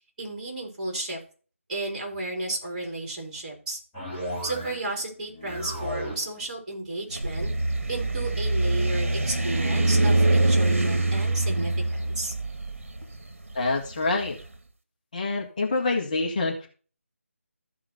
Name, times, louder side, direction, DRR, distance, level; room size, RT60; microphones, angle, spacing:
voice 1, 0.2-1.2 1.7-3.8 4.4-7.5 7.9-12.3, right 2 dB, 35° right, 0 dB, 4.3 m, -33 dB
sound 1, 3.9-5.0 5.3-6.3, equal, 10° left, 2.9 m, -34 dB
sound 2, 7.1-14.3, right 2 dB, 60° right, 1.9 m, -24 dB
voice 2, 13.5-14.4 15.1-16.7, left 3 dB, 35° left, -1 dB, 1.9 m, -26 dB
14.5 x 4.9 x 4.5 m, 0.38 s
figure-of-eight pair, 155°, 8 cm